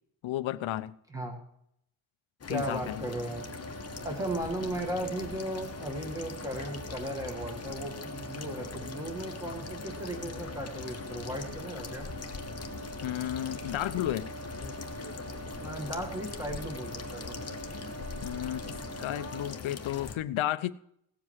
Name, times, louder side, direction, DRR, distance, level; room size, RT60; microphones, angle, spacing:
voice 1, 0.2-0.9 2.5-3.0 13.0-14.3 18.2-20.7, left 13 dB, 80° left, 0.8 m, -33 dB
sound 1, 2.4-20.2, left 6 dB, 30° left, 1.2 m, -41 dB
voice 2, 2.5-3.4 4.0-12.1 15.6-17.4, right 1 dB, 5° right, 2.2 m, -36 dB
sound 2, 3.3-19.5, right 4 dB, 35° right, 4.2 m, -45 dB
18.0 x 7.6 x 4.7 m
wide cardioid pair, 155°, 47 cm